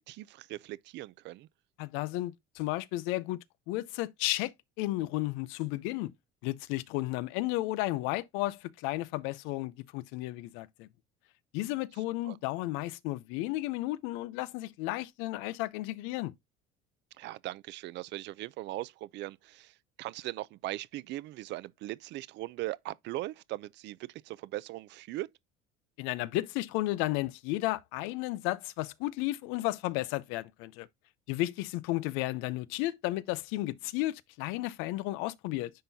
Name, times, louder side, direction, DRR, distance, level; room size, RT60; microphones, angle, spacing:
voice 1, 0.0-1.5 12.2-12.4 17.2-25.3, right 17 dB, 60° right, 0.5 m, -39 dB
voice 2, 1.8-4.5 4.8-6.1 6.4-10.9 11.5-16.3 26.0-30.9 31.3-35.7, left 17 dB, 85° left, 0.6 m, -33 dB
10.0 x 3.9 x 2.7 m
cardioid pair, 115°, 20 cm